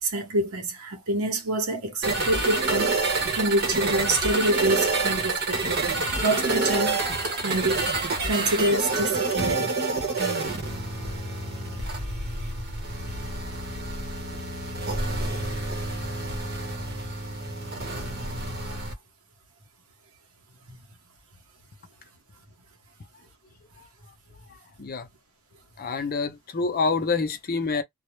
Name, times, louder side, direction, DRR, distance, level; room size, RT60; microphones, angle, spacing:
voice 1, 0.0-7.0 7.4-9.8 18.6-18.8, right 1 dB, 85° right, 0.9 m, -27 dB
sound 1, 2.0-18.9, right 3 dB, 50° right, 0.9 m, -28 dB
voice 2, 25.8-27.8, left 4 dB, 45° left, 0.6 m, -27 dB
2.3 x 2.1 x 3.0 m
head